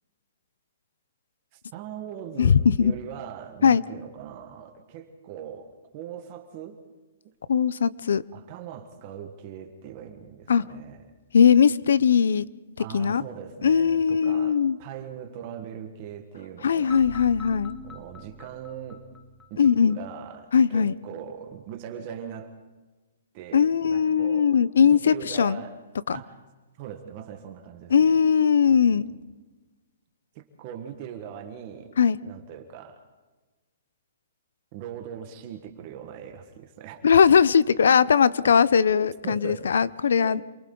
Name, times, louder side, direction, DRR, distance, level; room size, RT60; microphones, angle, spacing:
voice 1, 1.5-6.8 8.3-11.1 12.8-17.0 17.8-19.1 19.5-22.5 23.3-24.6 24.8-25.8 26.1-26.4 26.8-28.2 28.7-29.1 30.3-31.9 32.2-33.0 34.7-37.1 38.4-38.6 38.9-39.8 40.2-40.4, right 9 dB, 30° right, 5 dB, 1.5 m, -40 dB
voice 2, 2.4-2.9 3.6-3.8 7.5-8.2 10.5-10.6 11.3-12.5 12.9-13.2 13.6-14.8 16.6-17.8 19.6-20.0 20.5-20.9 23.5-25.6 26.1-26.2 27.9-29.1 32.0-32.2 37.0-40.4, left 7 dB, 80° left, 19 dB, 0.7 m, -20 dB
sound 1, 16.9-20.0, left 2 dB, 5° left, 0.8 m, -43 dB
28.0 x 23.5 x 4.0 m, 1.2 s
hypercardioid pair, 175°, 0 cm